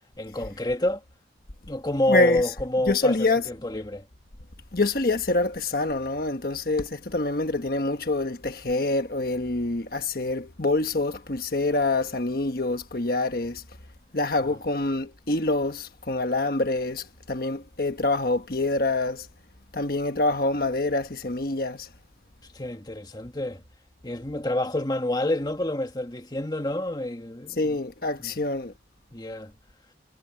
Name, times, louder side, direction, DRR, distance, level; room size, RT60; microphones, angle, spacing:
voice 1, 0.2-1.0 1.7-4.0 14.4-14.6 22.5-23.6 24.0-27.8 28.2-28.3 29.1-29.5, left 1 dB, 20° left, 1.7 m, -28 dB
voice 2, 2.1-2.4 2.8-3.5 4.7-13.6 14.1-19.3 19.7-21.9 27.5-28.7, left 2 dB, 55° left, 1.3 m, -26 dB
head